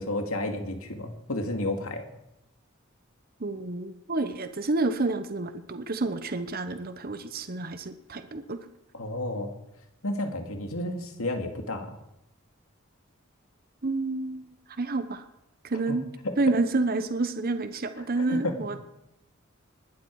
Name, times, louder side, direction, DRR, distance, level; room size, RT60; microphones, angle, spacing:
voice 1, 0.0-2.0 8.9-9.5 10.0-12.0 15.9-16.0 16.2-16.3 18.3-18.6, left 1 dB, 90° left, 5 dB, 2.3 m, -31 dB
voice 2, 3.4-8.6 13.8-15.3 15.6-16.0 16.4-18.8, right 3 dB, 45° right, 10 dB, 1.0 m, -29 dB
20.5 x 12.0 x 4.8 m, 0.87 s
head